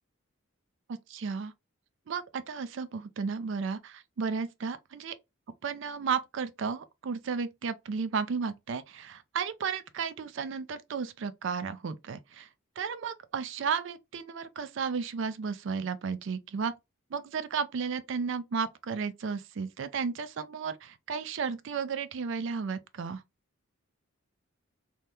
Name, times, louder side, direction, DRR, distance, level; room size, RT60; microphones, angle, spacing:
voice 1, 0.9-1.5 2.1-5.1 5.6-12.5 12.8-16.7 17.1-23.2, right 5 dB, 60° right, 0.4 m, -33 dB
2.8 x 2.1 x 3.4 m
head